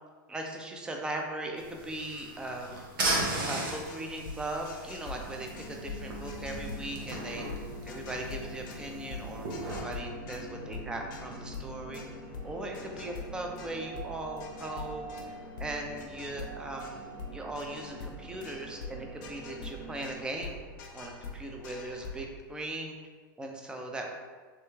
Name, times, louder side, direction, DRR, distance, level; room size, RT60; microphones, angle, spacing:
voice 1, 0.3-2.8 3.5-7.5 7.8-12.0 12.4-17.0 17.3-20.6 20.9-23.0 23.4-24.1, right 1 dB, 10° right, 1 dB, 0.3 m, -39 dB
sound 1, 1.6-9.8, right 2 dB, 85° right, 0.7 m, -37 dB
sound 2, 3.7-22.3, left 3 dB, 65° left, 0.5 m, -45 dB
sound 3, 5.1-20.2, equal, 45° right, 0.7 m, -45 dB
3.4 x 2.1 x 3.1 m, 1.5 s
supercardioid pair, 130°, 11 cm